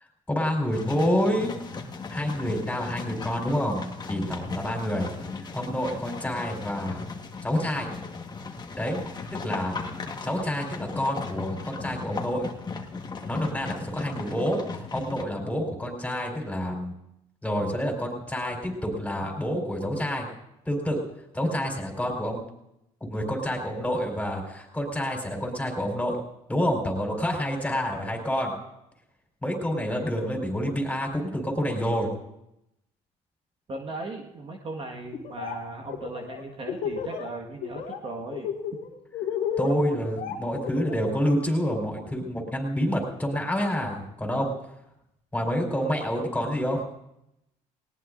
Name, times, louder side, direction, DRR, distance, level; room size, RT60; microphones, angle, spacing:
voice 1, 0.3-1.5 2.1-5.1 5.5-7.0 7.4-7.9 8.8-9.0 9.4-9.7 10.2-12.4 13.2-14.6 14.9-16.9 17.4-20.3 20.7-21.0 21.3-22.4 23.1-26.2 26.5-28.5 29.4-32.1 39.6-44.6 45.3-46.8, equal, 10° left, 1 dB, 4.4 m, -28 dB
sound 1, 0.7-15.2, left 4 dB, 30° left, 1.4 m, -37 dB
voice 2, 33.7-38.5, right 2 dB, 40° right, 1 dB, 1.7 m, -37 dB
Laughter, 35.1-35.5 35.8-37.3 37.6-38.0 38.3-41.2, left 8 dB, 75° left, 2.0 m, -32 dB
18.5 x 18.5 x 2.6 m, 0.84 s
supercardioid pair, 85°, 14 cm